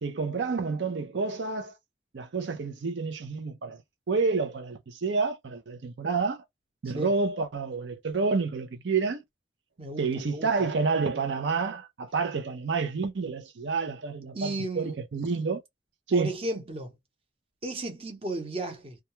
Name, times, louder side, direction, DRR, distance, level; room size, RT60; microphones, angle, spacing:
voice 1, 0.0-1.7 2.1-3.8 4.1-6.4 6.8-9.2 10.0-15.6 16.1-16.3, right 4 dB, 75° right, 0.5 m, -29 dB
voice 2, 9.8-10.5 14.3-15.0 16.1-16.9 17.6-19.0, right 2 dB, 30° right, 0.8 m, -34 dB
2.3 x 2.2 x 2.9 m
head